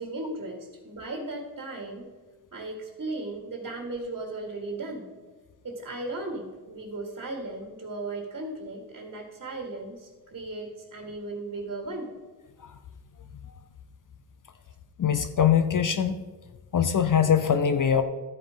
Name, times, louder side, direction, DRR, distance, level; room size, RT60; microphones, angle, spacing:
voice 1, 0.0-2.1 2.5-5.1 5.6-12.1, right 2 dB, 40° right, 1 dB, 1.8 m, -36 dB
voice 2, 15.0-16.2 16.7-18.0, left 8 dB, 50° left, 10 dB, 0.7 m, -22 dB
13.0 x 5.1 x 5.0 m, 1.3 s
cardioid pair, 75°, 41 cm